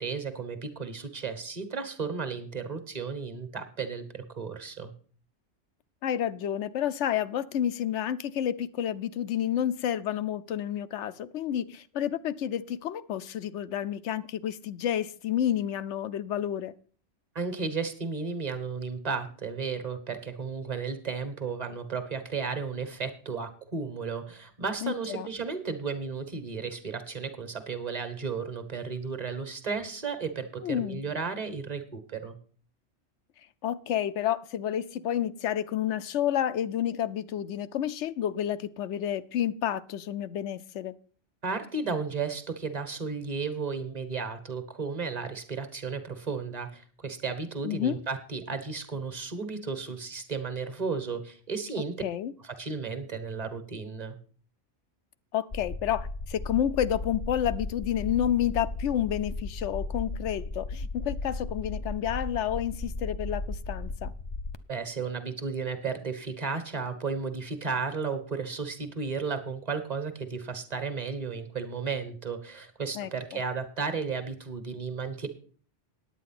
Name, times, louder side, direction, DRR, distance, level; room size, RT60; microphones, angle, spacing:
voice 1, 0.0-4.9 17.3-32.3 41.4-52.0 52.4-54.2 64.7-75.3, right 5 dB, 35° right, 9 dB, 1.5 m, -34 dB
voice 2, 6.0-16.7 24.8-25.3 30.6-31.0 33.6-40.9 47.6-48.0 52.0-52.3 55.3-64.1 72.9-73.4, left 10 dB, 85° left, 14 dB, 1.0 m, -30 dB
sound 1, 55.5-64.6, left 3 dB, 35° left, 0.4 m, -35 dB
9.6 x 9.0 x 5.8 m, 0.43 s
omnidirectional pair, 1.2 m